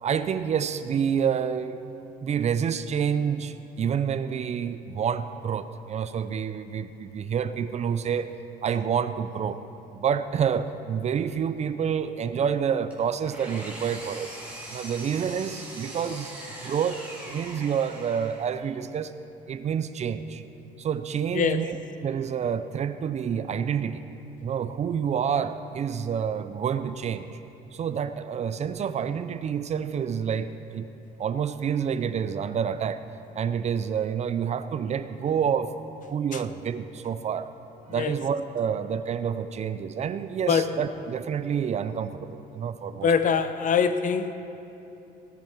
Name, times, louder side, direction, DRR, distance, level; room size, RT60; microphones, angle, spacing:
voice 1, 0.0-1.9 2.2-8.3 8.6-9.6 9.9-14.3 14.7-16.3 16.6-19.1 19.5-20.4 20.8-21.8 22.0-24.1 24.4-27.4 27.7-30.9 31.2-33.0 33.3-35.7 36.0-37.5 37.9-43.1, right 7 dB, 40° right, 12 dB, 0.5 m, -28 dB
Engine, 12.9-18.6, right 1 dB, 10° right, 3.3 m, -41 dB
voice 2, 43.0-44.3, left 6 dB, 50° left, 10 dB, 0.8 m, -23 dB
17.5 x 10.5 x 4.6 m, 2.9 s
cardioid pair, 110°, 17 cm